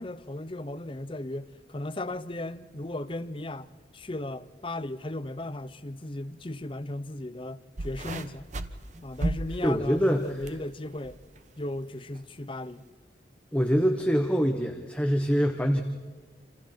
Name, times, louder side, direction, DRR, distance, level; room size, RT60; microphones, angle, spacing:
voice 1, 0.0-8.5 9.0-11.2 11.6-12.9, left 1 dB, 25° left, 0.7 m, -36 dB
sound 1, 7.8-10.6 11.0-11.4 12.2-12.3, right 1 dB, 40° right, 1.0 m, -34 dB
voice 2, 9.6-10.4 13.5-15.8, equal, 5° left, 1.1 m, -24 dB
28.0 x 27.0 x 4.4 m
head